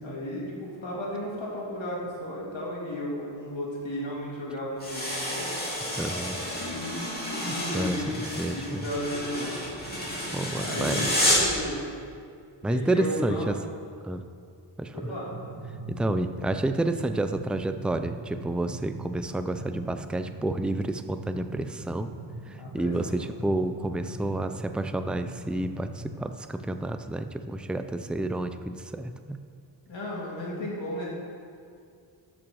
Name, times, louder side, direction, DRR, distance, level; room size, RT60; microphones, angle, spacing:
voice 1, 0.0-5.5 6.3-8.2 8.5-9.6 10.5-11.9 12.6-13.5 14.9-15.3 22.6-23.4 29.9-31.1, left 1 dB, 75° left, -5 dB, 3.2 m, -34 dB
sound 1, 4.8-11.6, left 1 dB, 20° left, 3.1 m, -30 dB
voice 2, 5.9-6.4 7.4-8.0 8.4-8.9 10.3-11.2 12.6-13.6 14.0-14.2 14.8-15.1 15.9-22.1 22.5-29.4, right 2 dB, ahead, 9 dB, 0.4 m, -30 dB
sound 2, 15.3-26.2, right 2 dB, 80° right, 1.7 m, -42 dB
13.0 x 6.2 x 6.3 m, 2.3 s
wide cardioid pair, 115°, 45 cm